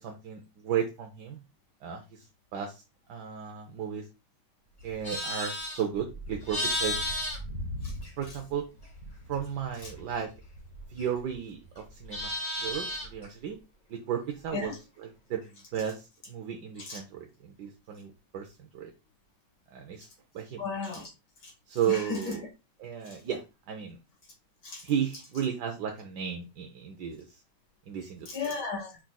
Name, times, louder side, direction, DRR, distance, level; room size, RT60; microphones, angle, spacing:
voice 1, 0.0-1.4 1.8-2.0 2.5-2.8 3.1-4.0 4.8-7.0 8.2-8.6 9.3-10.3 10.9-13.6 13.9-14.7 15.0-18.9 19.7-20.1 20.3-20.6 21.7-22.4 22.8-23.4 23.7-24.0 24.8-27.2 27.9-28.3, right 8 dB, 75° right, 3 dB, 1.2 m, -34 dB
Livestock farm animals working animals, 4.8-8.5 8.8-11.4 11.7-13.3, left 1 dB, 30° left, 1.5 m, -35 dB
voice 2, 20.6-21.1 21.4-21.5 21.9-22.4 24.6-24.8 28.3-29.0, left 4 dB, 70° left, -1 dB, 2.4 m, -35 dB
5.9 x 3.8 x 2.2 m, 0.28 s
omnidirectional pair, 1.9 m